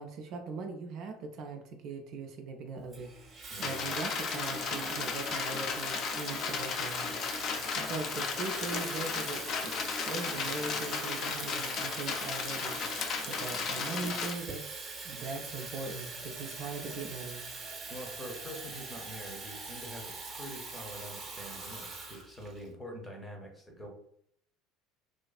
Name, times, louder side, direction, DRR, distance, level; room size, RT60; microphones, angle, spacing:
voice 1, 0.0-7.1 7.7-9.7 10.0-12.8 13.3-14.6 15.0-17.4, right 4 dB, 55° right, 4 dB, 0.3 m, -40 dB
Water tap faucet / Fill (with liquid), 2.9-22.7, right 3 dB, 35° right, 0.7 m, -43 dB
voice 2, 3.5-4.0 17.9-23.9, equal, 15° left, 2 dB, 0.7 m, -45 dB
sound 1, 3.6-14.3, left 5 dB, 50° left, 0.4 m, -35 dB
2.4 x 2.3 x 2.3 m, 0.68 s
hypercardioid pair, 70°, 0 cm